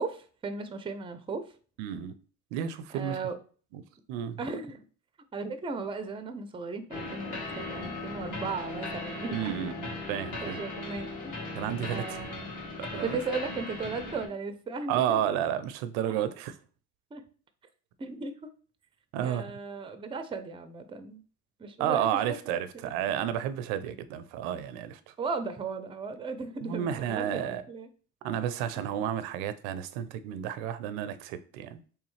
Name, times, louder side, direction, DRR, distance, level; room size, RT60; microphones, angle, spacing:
voice 1, 0.0-1.4 2.9-3.4 4.4-4.8 5.3-9.5 10.4-11.4 11.9-12.5 13.0-15.2 17.1-17.2 18.0-18.3 19.2-21.2 21.6-23.3 25.2-27.9, right 4 dB, 15° right, 0.4 m, -36 dB
voice 2, 1.8-2.1 2.5-3.2 3.7-3.8 4.1-4.4 9.3-10.6 11.5-12.2 12.8-13.2 14.9-16.5 19.1-19.4 21.8-25.1 26.6-27.6 28.2-31.8, right 10 dB, 85° right, 0.5 m, -31 dB
sound 1, 6.9-14.3, left 2 dB, 50° left, 1.5 m, -38 dB
3.5 x 3.1 x 3.1 m
supercardioid pair, 75°, 41 cm